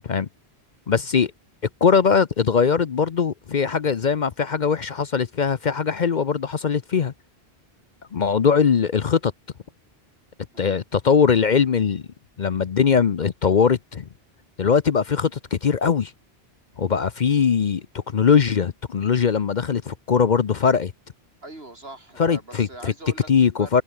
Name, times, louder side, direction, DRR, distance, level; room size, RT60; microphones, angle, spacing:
voice 1, 0.9-1.3 1.8-7.1 8.1-9.3 10.6-12.1 12.4-14.1 14.6-16.1 16.8-20.9 22.2-22.9 23.3-23.8, left 6 dB, 50° left, 0.8 m, -21 dB
voice 2, 21.4-23.3 23.6-23.7, right 2 dB, 70° right, 5.1 m, -41 dB
omnidirectional pair, 1.1 m